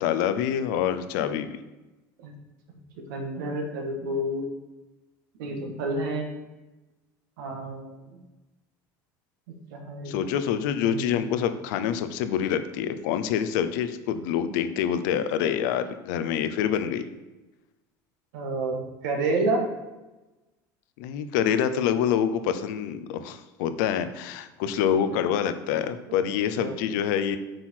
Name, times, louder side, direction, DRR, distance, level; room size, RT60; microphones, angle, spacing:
voice 1, 0.0-1.6 10.1-17.0 21.0-27.4, left 9 dB, 75° left, 11 dB, 0.7 m, -26 dB
voice 2, 3.1-4.5 5.4-6.3 7.4-8.2 9.7-10.1 10.8-11.4 18.3-19.7 26.6-26.8, right 2 dB, 80° right, 3 dB, 1.5 m, -29 dB
7.6 x 4.5 x 4.5 m, 1.1 s
supercardioid pair, 90°, 10 cm